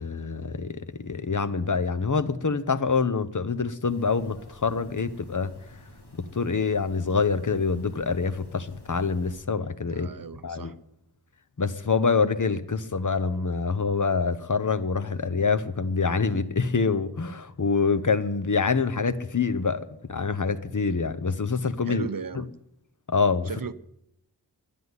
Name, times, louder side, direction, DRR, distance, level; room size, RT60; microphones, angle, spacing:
voice 1, 0.0-5.5 6.2-10.1 10.4-10.7 11.6-19.8 20.1-22.1 22.3-22.4 23.1-23.5, left 5 dB, 50° left, 0.9 m, -26 dB
sound 1, 3.8-9.4, left 1 dB, 70° left, 3.0 m, -50 dB
voice 2, 9.9-10.7 21.8-22.5 23.5-23.7, right 6 dB, 55° right, 0.7 m, -36 dB
11.0 x 10.0 x 9.6 m
wide cardioid pair, 50°, 40 cm